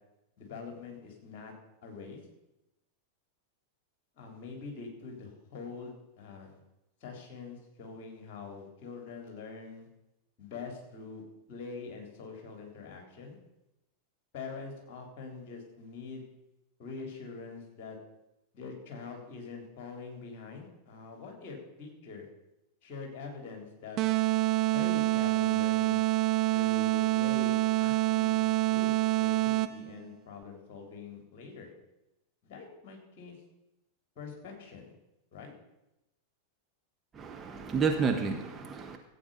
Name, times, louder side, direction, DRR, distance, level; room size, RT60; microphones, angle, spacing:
voice 1, 0.4-1.5 1.8-2.2 4.2-6.6 7.0-9.9 10.4-11.2 11.5-13.4 14.3-16.2 16.8-18.0 18.5-22.3 22.8-24.0 24.7-26.0 26.5-31.7 32.4-33.4 34.2-34.9 35.3-35.5, left 4 dB, 45° left, 2 dB, 3.5 m, -44 dB
sound 1, 24.0-29.9, right 17 dB, 40° right, 0.5 m, -27 dB
voice 2, 37.1-39.0, right 5 dB, 20° right, 3 dB, 1.3 m, -30 dB
15.0 x 8.6 x 5.5 m, 0.93 s
figure-of-eight pair, 90°, 0 cm